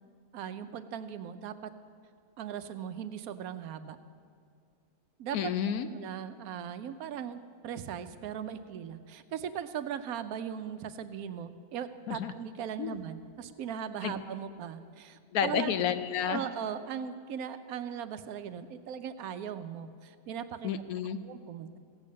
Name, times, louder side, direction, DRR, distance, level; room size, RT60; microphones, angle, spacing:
voice 1, 0.3-1.7 2.4-4.0 5.2-5.5 5.9-15.7 16.2-20.7 21.2-21.8, right 8 dB, 75° right, 11 dB, 1.1 m, -39 dB
voice 2, 5.3-5.9 12.1-12.3 12.8-13.0 14.0-14.1 15.3-16.4 20.6-21.2, left 8 dB, 75° left, 11 dB, 1.1 m, -30 dB
15.5 x 8.5 x 6.4 m, 2.2 s
omnidirectional pair, 1.6 m